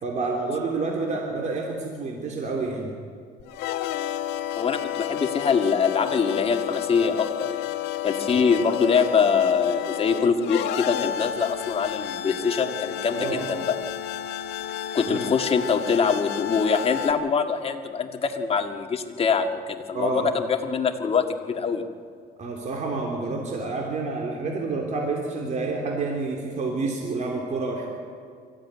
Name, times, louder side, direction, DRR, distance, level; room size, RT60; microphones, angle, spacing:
voice 1, 0.0-2.9 8.3-8.4 13.2-13.4 15.1-15.2 19.9-20.3 22.4-27.9, right 3 dB, 45° right, 0 dB, 3.3 m, -28 dB
sound 1, 3.4-17.1, left 11 dB, 85° left, 1.5 m, -31 dB
voice 2, 4.6-7.7 8.0-13.8 14.9-21.8, left 6 dB, 35° left, 5 dB, 1.9 m, -24 dB
23.5 x 15.0 x 9.6 m, 2.1 s
cardioid pair, 110°, 17 cm